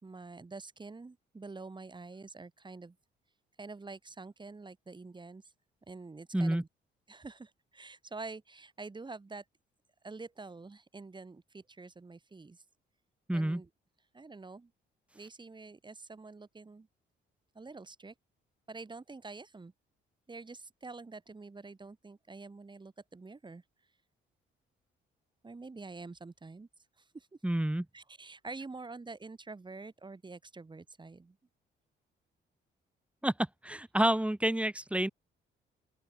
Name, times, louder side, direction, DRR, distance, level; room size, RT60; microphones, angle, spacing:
voice 1, 0.0-3.0 3.6-5.4 5.9-6.7 7.1-9.4 10.0-12.6 13.3-13.7 14.1-14.7 15.1-16.9 17.6-18.1 18.7-19.7 20.3-23.6 25.4-26.7 27.0-27.3 27.9-31.4, right 3 dB, 25° right, 3.5 m, -47 dB
voice 2, 13.3-13.6 27.4-27.8 33.2-33.3 33.6-35.1, right 1 dB, 5° right, 1.0 m, -29 dB
open air
cardioid pair, 90°, 20 cm